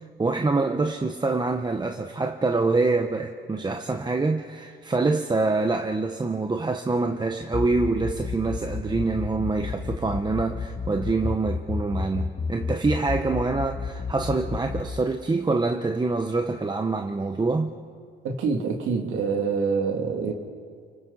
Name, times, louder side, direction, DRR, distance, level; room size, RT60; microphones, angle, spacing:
voice 1, 0.2-17.7, right 3 dB, 20° right, 1.0 m, -25 dB
sound 1, 7.4-14.8, left 5 dB, 30° left, 2.5 m, -30 dB
voice 2, 18.2-20.3, right 5 dB, 85° right, 2.8 m, -26 dB
30.0 x 24.5 x 4.2 m
cardioid pair, 90°, 20 cm